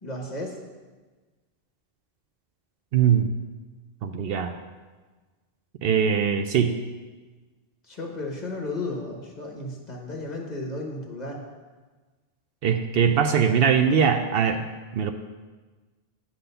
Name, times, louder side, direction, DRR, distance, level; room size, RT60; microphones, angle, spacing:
voice 1, 0.0-0.6 6.0-6.1 7.9-11.4, left 2 dB, 40° left, 0 dB, 1.4 m, -34 dB
voice 2, 2.9-3.3 4.0-4.5 5.8-6.8 12.6-14.7 14.9-15.1, right 7 dB, 65° right, 7 dB, 0.7 m, -21 dB
9.8 x 3.9 x 6.7 m, 1.3 s
omnidirectional pair, 1.1 m